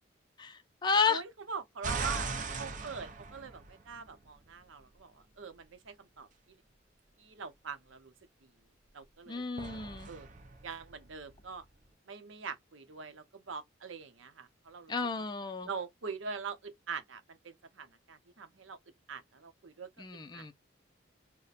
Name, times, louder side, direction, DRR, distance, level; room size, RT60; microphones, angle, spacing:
voice 1, 0.4-1.2 9.3-10.1 14.9-15.7 20.0-20.5, left 5 dB, 20° left, 0.4 m, -32 dB
voice 2, 1.1-2.3 2.6-6.3 7.2-8.1 8.9-9.5 10.1-10.3 10.6-11.6 12.1-15.3 15.6-18.8 19.1-19.9 20.3-20.5, right 5 dB, 85° right, 0.7 m, -43 dB
sound 1, 1.8-4.2 9.6-11.6, right 4 dB, 40° right, 0.5 m, -39 dB
4.1 x 2.1 x 2.4 m
head